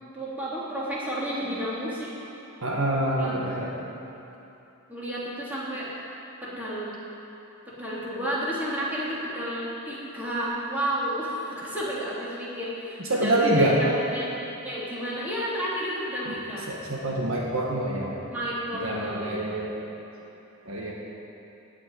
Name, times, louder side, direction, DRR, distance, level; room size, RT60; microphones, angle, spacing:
voice 1, 0.1-2.1 3.1-3.3 4.9-5.9 6.4-6.9 7.6-14.3 14.6-16.7 18.3-19.4, equal, 10° right, -8 dB, 3.1 m, -31 dB
voice 2, 2.6-3.7 13.1-13.8 16.3-16.4 16.7-18.2 18.8-19.7 20.7-20.9, right 1 dB, 65° right, -3 dB, 1.8 m, -26 dB
17.0 x 6.1 x 9.5 m, 3.0 s
head